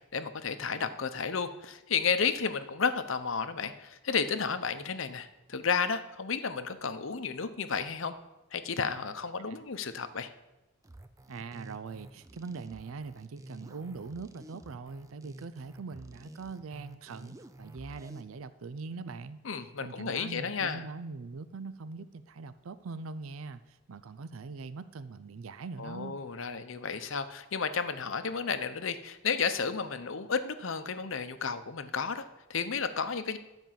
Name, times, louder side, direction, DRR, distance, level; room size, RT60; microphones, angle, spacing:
voice 1, 0.1-8.1 8.5-10.3 19.4-20.9 25.8-33.4, left 5 dB, 65° left, 10 dB, 0.8 m, -32 dB
sound 1, 10.8-18.2, right 1 dB, 15° right, 0.5 m, -50 dB
voice 2, 11.3-19.4 19.8-26.2, right 4 dB, 75° right, 14 dB, 0.5 m, -42 dB
12.5 x 5.3 x 7.5 m, 1.0 s
head